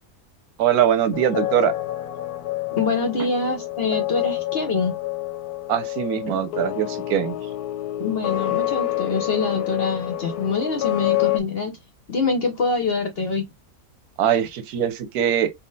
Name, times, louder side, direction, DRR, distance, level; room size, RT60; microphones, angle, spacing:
voice 1, 0.6-1.7 3.2-3.3 5.7-7.4 14.2-15.5, right 10 dB, 85° right, 1.2 m, -22 dB
sound 1, 1.1-11.4, left 15 dB, 90° left, 1.1 m, -28 dB
voice 2, 2.7-5.0 8.0-11.7 12.1-13.5, left 4 dB, 50° left, 0.8 m, -25 dB
3.6 x 2.3 x 3.8 m
omnidirectional pair, 1.6 m